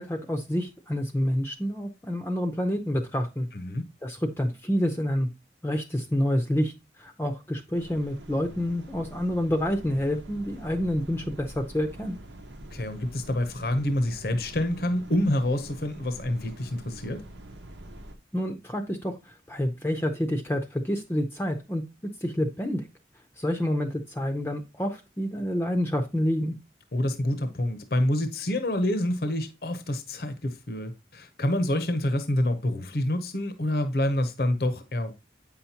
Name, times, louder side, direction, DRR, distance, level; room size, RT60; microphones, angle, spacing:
voice 1, 0.0-3.5 4.0-5.3 5.6-6.7 7.0-12.2 18.3-19.1 19.5-21.8 22.2-22.8 23.4-26.5, equal, 15° left, 0.6 m, -28 dB
voice 2, 3.5-3.9 12.7-17.2 26.9-35.1, left 1 dB, 55° left, 0.8 m, -27 dB
sound 1, 7.7-18.2, right 1 dB, 85° right, 0.9 m, -45 dB
8.5 x 5.7 x 2.8 m
head